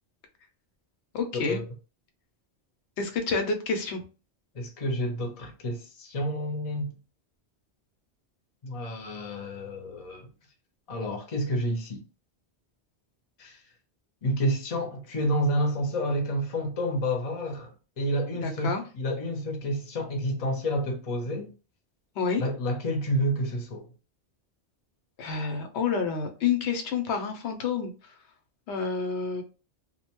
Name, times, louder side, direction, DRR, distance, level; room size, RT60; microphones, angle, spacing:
voice 1, 1.1-1.6 3.0-4.0 18.4-18.8 22.2-22.4 25.2-27.9 28.7-29.4, left 5 dB, 85° left, 0.9 m, -28 dB
voice 2, 4.5-6.9 8.6-10.3 10.9-12.0 13.4-13.6 14.2-21.5 22.4-23.9, equal, 40° left, 0.7 m, -29 dB
2.5 x 2.1 x 2.9 m
omnidirectional pair, 1.1 m